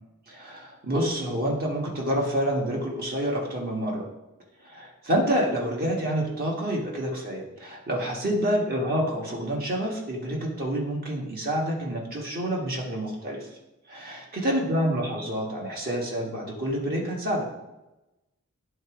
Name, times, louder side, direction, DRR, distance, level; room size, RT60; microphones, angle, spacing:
voice 1, 0.3-4.1 4.6-13.4 13.9-17.4, equal, 40° right, -2 dB, 1.7 m, -28 dB
10.5 x 3.5 x 4.9 m, 0.99 s
head